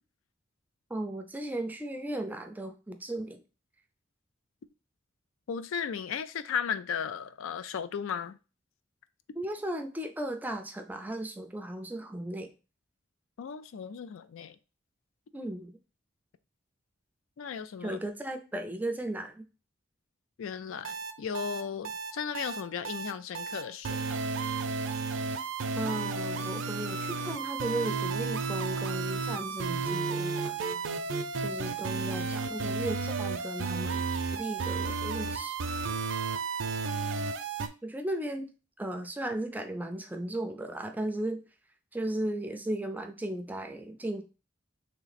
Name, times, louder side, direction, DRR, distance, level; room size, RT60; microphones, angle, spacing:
voice 1, 0.9-3.4 9.4-12.5 15.3-15.7 17.8-19.4 25.8-30.6 31.4-35.6 37.8-38.5 38.8-41.4 41.9-44.2, right 1 dB, 10° right, 0.4 m, -36 dB
voice 2, 5.5-8.4 13.4-14.6 17.4-18.0 20.4-24.3, left 7 dB, 90° left, 0.4 m, -35 dB
sound 1, 20.8-37.7, right 4 dB, 75° right, 0.5 m, -33 dB
3.2 x 2.9 x 4.1 m
head